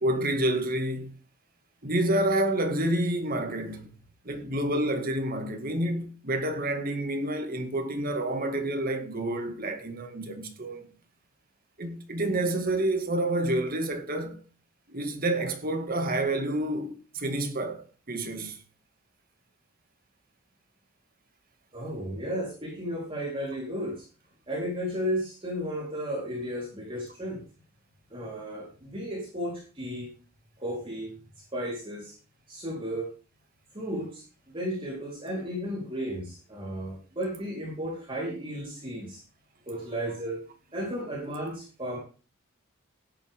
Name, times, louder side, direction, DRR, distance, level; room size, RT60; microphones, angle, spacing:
voice 1, 0.0-1.1 1.8-3.9 4.2-10.9 11.8-14.4 14.9-18.6, right 1 dB, 45° right, 2.2 m, -28 dB
voice 2, 21.7-24.1 24.5-27.4 28.1-30.1 30.6-31.1 31.5-32.1 32.5-33.1 33.7-39.2 39.7-40.4 40.7-42.0, equal, 25° right, 4.0 m, -34 dB
16.5 x 10.5 x 3.7 m
head